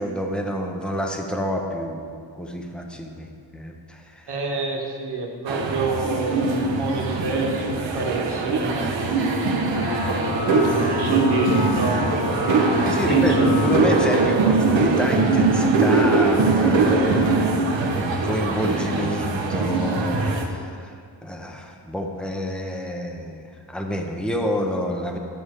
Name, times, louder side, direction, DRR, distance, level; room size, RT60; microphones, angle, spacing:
voice 1, 0.0-4.3 12.6-25.2, equal, ahead, 2 dB, 0.9 m, -28 dB
voice 2, 4.3-9.8 10.9-12.0 13.1-13.6, right 3 dB, 60° right, -1 dB, 1.9 m, -28 dB
sound 1, 5.5-20.5, right 3 dB, 85° right, 1.3 m, -21 dB
sound 2, 9.4-14.4, left 3 dB, 55° left, 1.5 m, -29 dB
12.5 x 7.2 x 4.8 m, 2.2 s
wide cardioid pair, 135°, 44 cm